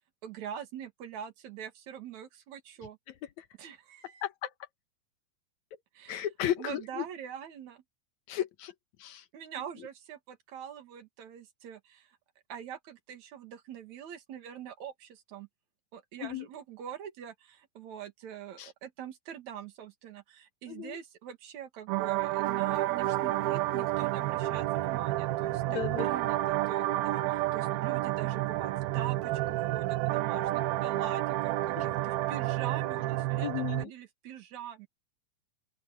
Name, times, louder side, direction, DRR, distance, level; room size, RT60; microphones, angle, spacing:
voice 1, 0.2-3.0 3.6-4.3 5.9-6.3 6.6-7.8 9.3-12.2 12.5-15.5 15.9-34.9, right 9 dB, 55° right, 2.9 m, -44 dB
voice 2, 6.1-7.1 8.3-8.7 9.0-9.2 16.2-16.5 18.6-18.7 20.7-21.0 25.7-26.1 31.8-31.9 33.4-33.9, left 11 dB, 65° left, 2.1 m, -34 dB
sound 1, 21.9-33.9, right 16 dB, 90° right, 2.7 m, -30 dB
open air
omnidirectional pair, 4.2 m